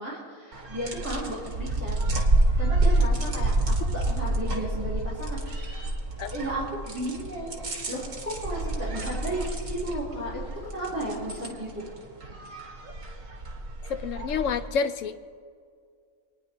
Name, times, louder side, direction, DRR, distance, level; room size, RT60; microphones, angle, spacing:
voice 1, 0.0-2.0 2.6-5.9 6.3-11.8, right 1 dB, 10° right, -8 dB, 3.1 m, -34 dB
sound 1, 0.5-14.7, right 2 dB, 60° right, 2.1 m, -28 dB
voice 2, 13.9-15.2, left 6 dB, 70° left, 11 dB, 0.9 m, -28 dB
25.5 x 9.9 x 3.0 m, 2.2 s
omnidirectional pair, 1.5 m